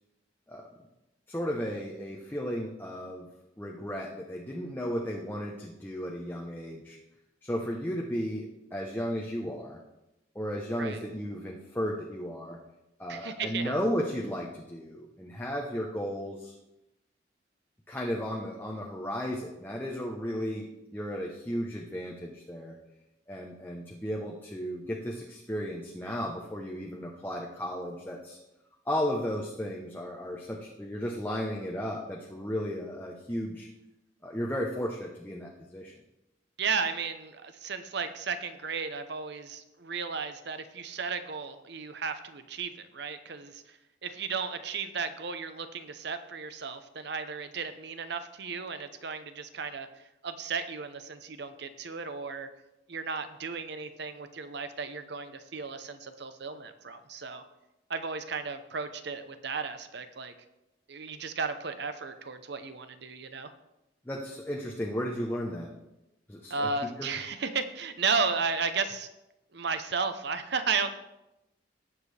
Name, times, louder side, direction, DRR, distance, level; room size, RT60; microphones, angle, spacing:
voice 1, 1.3-3.3 3.6-7.0 7.4-9.8 10.3-12.6 13.0-16.5 17.9-22.8 23.3-28.4 28.9-33.7 34.2-35.9 64.0-65.7 66.3-66.7 67.0-67.1, equal, 10° left, 0 dB, 0.9 m, -34 dB
voice 2, 13.1-13.8 36.6-49.9 50.2-52.5 52.9-57.4 57.9-60.3 60.9-63.5 66.5-69.1 69.5-70.9, right 5 dB, 60° right, 10 dB, 0.8 m, -34 dB
18.0 x 7.3 x 3.4 m, 0.94 s
head